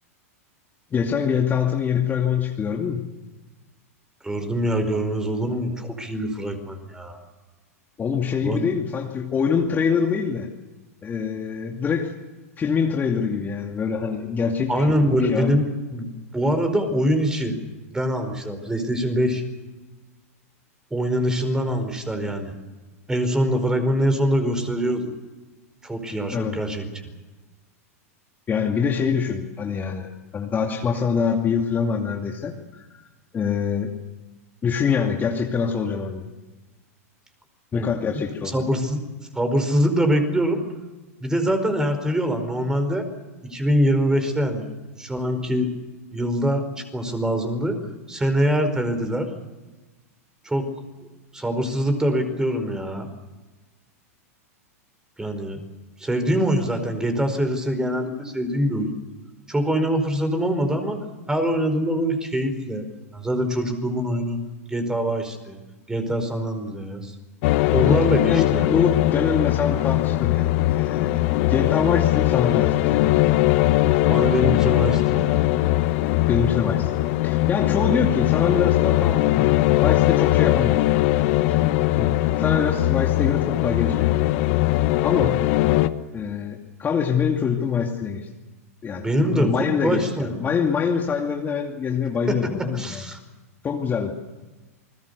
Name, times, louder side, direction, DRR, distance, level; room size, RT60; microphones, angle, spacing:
voice 1, 0.9-3.1 8.0-10.5 11.0-12.1 12.6-15.6 26.3-26.6 28.5-33.1 33.3-33.9 34.6-36.2 37.7-38.6 67.9-71.2 71.5-73.2 76.3-76.9 77.2-79.5 79.8-80.9 81.5-81.6 81.9-84.3 85.0-85.4 86.1-88.3 88.8-89.1 89.3-93.1 93.6-94.1, left 6 dB, 25° left, 2 dB, 2.5 m, -25 dB
voice 2, 4.2-7.2 8.4-8.6 14.7-15.6 15.9-16.1 16.3-17.6 17.9-19.4 20.9-22.5 23.1-25.1 25.8-26.8 37.7-39.0 39.3-40.6 41.2-43.0 43.4-44.7 45.0-45.7 46.1-46.6 46.9-47.8 48.1-49.3 50.4-50.6 51.3-53.1 55.2-55.6 56.0-58.9 59.5-61.0 61.3-62.8 63.1-64.4 64.7-65.6 65.9-67.1 67.7-68.8 74.1-75.4 89.0-89.5 89.8-90.3 92.7-93.2, equal, 10° right, 7 dB, 4.9 m, -24 dB
sound 1, 67.4-85.9, left 16 dB, 55° left, 1.3 m, -20 dB
29.0 x 21.0 x 6.9 m, 1.2 s
hypercardioid pair, 105°, 8 cm